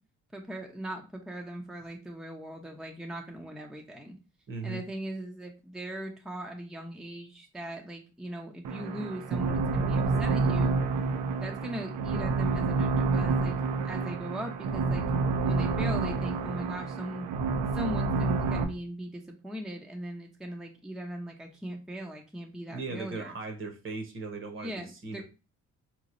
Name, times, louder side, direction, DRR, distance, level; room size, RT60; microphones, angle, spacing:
voice 1, 0.3-4.2 4.6-10.8 11.4-13.6 13.8-15.0 15.4-17.3 17.7-23.3 24.6-25.2, right 1 dB, ahead, 1 dB, 0.6 m, -39 dB
voice 2, 4.5-4.8 22.7-25.2, right 3 dB, 45° right, 4 dB, 1.0 m, -38 dB
sound 1, 8.6-18.6, right 4 dB, 75° right, 0.6 m, -28 dB
3.9 x 3.0 x 2.5 m, 0.32 s
cardioid pair, 90°, 30 cm